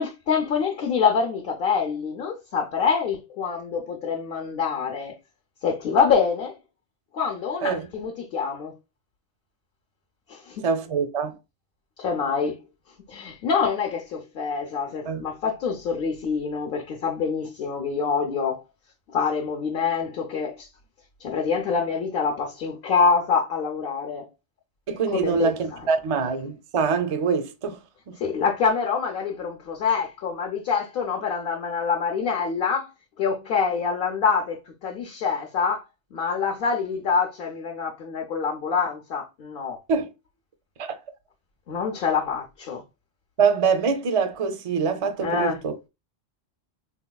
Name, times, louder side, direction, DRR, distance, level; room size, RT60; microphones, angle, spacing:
voice 1, 0.0-5.2 5.6-6.6 7.1-8.7 10.3-10.6 12.0-12.6 13.1-18.6 19.1-20.7 21.2-24.3 25.1-25.9 28.2-32.9 33.2-35.8 36.1-39.8 41.7-42.8 45.2-45.6, left 5 dB, 60° left, 0.8 m, -26 dB
voice 2, 10.6-11.3 15.1-15.2 24.9-27.8 28.1-28.2 39.9-40.1 40.8-41.0 43.4-45.8, right 5 dB, 45° right, 0.4 m, -24 dB
3.7 x 2.8 x 2.2 m
omnidirectional pair, 1.1 m